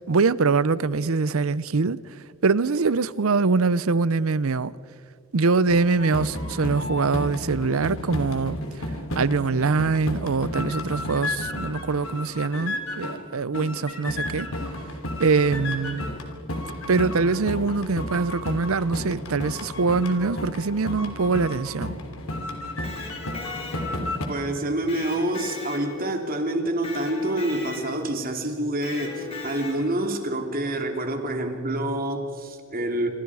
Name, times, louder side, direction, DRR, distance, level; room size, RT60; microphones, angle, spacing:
voice 1, 0.0-2.0 2.4-4.7 5.3-8.6 9.1-14.5 15.2-16.1 16.9-21.9, right 4 dB, 80° right, 0.7 m, -23 dB
sound 1, 5.7-13.3 13.5-24.3, left 1 dB, 90° left, 3.3 m, -32 dB
Electric guitar, 22.7-24.2 24.9-26.3 26.8-28.1 28.8-30.0, left 4 dB, 30° left, 4.1 m, -38 dB
voice 2, 24.3-33.1, right 1 dB, 45° right, 2.8 m, -27 dB
27.0 x 25.5 x 4.9 m
head